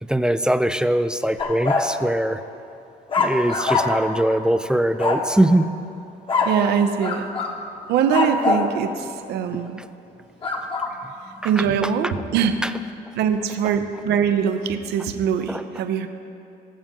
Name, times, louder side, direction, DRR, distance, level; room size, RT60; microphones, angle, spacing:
voice 1, 0.0-2.4 3.2-5.7 9.5-9.6 11.4-11.9 12.6-12.7 15.5-15.6, right 1 dB, 5° right, 10 dB, 0.4 m, -21 dB
sound 1, 1.4-1.9 3.1-4.2 5.0-5.3 6.3-6.6 7.0-7.6 8.1-8.7 10.4-10.9, left 4 dB, 30° left, 1.2 m, -23 dB
voice 2, 6.4-7.3 7.9-9.8 11.4-12.6 13.2-16.1, right 7 dB, 75° right, 8 dB, 0.8 m, -22 dB
19.5 x 7.3 x 3.7 m, 2.6 s
cardioid pair, 110°, 17 cm